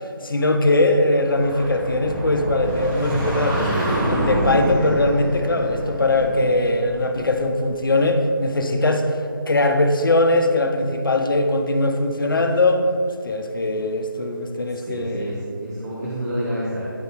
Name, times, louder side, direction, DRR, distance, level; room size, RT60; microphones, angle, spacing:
voice 1, 0.2-3.7 4.0-12.8 13.2-15.3, left 2 dB, 65° left, 5 dB, 0.8 m, -20 dB
sound 1, 1.2-7.8, right 1 dB, 5° right, 0.4 m, -26 dB
voice 2, 14.7-16.9, right 1 dB, 45° right, -6 dB, 1.2 m, -29 dB
9.4 x 5.1 x 3.2 m, 2.3 s
figure-of-eight pair, 170°, 12 cm